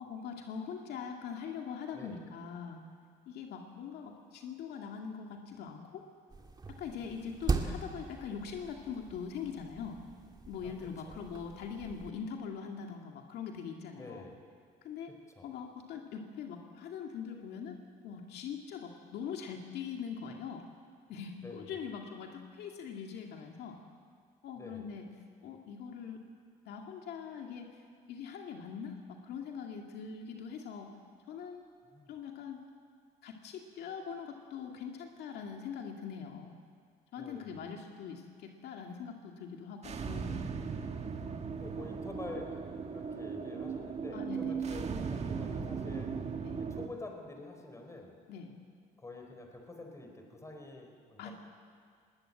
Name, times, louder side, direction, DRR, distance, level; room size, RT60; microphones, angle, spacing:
voice 1, 0.0-2.8 3.3-6.0 6.8-10.0 10.5-14.2 14.8-15.1 15.4-20.6 21.1-23.8 24.4-25.1 25.4-26.2 26.7-27.7 28.1-30.9 31.3-31.6 32.1-32.6 33.2-36.5 37.1-40.4 44.1-44.5 46.4-46.6 48.3-48.5 51.2-51.3, left 6 dB, 75° left, 2 dB, 2.1 m, -42 dB
sound 1, 6.3-12.1, right 4 dB, 25° right, 2.1 m, -39 dB
voice 2, 10.6-11.2 13.9-14.3 15.1-15.5 21.4-21.8 24.5-24.9 31.9-32.1 37.2-37.7 40.9-41.2 41.5-46.2 46.6-48.2 49.0-51.3, left 2 dB, 15° left, 3 dB, 4.5 m, -48 dB
sound 2, 39.8-46.9, right 5 dB, 40° right, 1.7 m, -37 dB
21.0 x 18.5 x 8.9 m, 2.1 s
cardioid pair, 110°, 17 cm